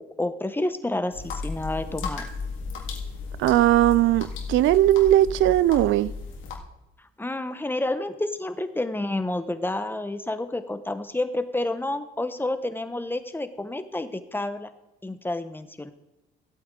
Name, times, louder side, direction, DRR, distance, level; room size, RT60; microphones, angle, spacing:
voice 1, 0.0-2.2 7.2-14.7 15.0-15.9, left 2 dB, 10° left, 10 dB, 1.0 m, -29 dB
sound 1, 1.1-6.6, left 4 dB, 90° left, 2.0 m, -34 dB
voice 2, 3.4-6.1, right 14 dB, 80° right, 19 dB, 0.4 m, -19 dB
15.0 x 8.6 x 3.8 m, 0.99 s
cardioid pair, 90°, 20 cm